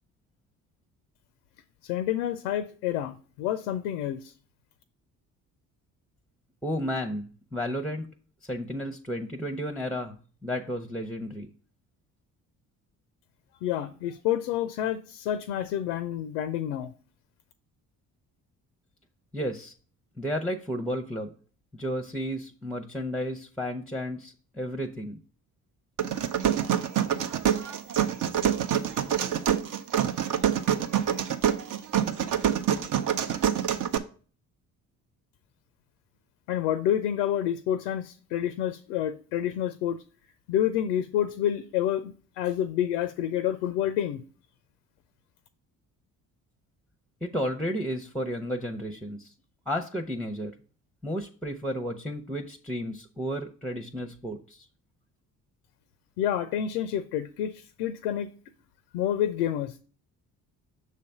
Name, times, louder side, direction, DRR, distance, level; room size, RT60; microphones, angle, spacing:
voice 1, 1.8-4.3 13.6-16.9 36.5-40.0 40.5-44.2 56.2-58.3 58.9-59.8, left 10 dB, 80° left, 0.5 m, -28 dB
voice 2, 6.6-8.1 8.5-11.5 19.3-19.7 20.2-21.3 21.7-25.2 47.2-49.3 49.7-50.5 51.0-54.6, equal, ahead, 0.7 m, -32 dB
sound 1, 26.0-34.0, right 9 dB, 45° right, 0.7 m, -26 dB
6.6 x 3.3 x 5.3 m
hypercardioid pair, 45°, 44 cm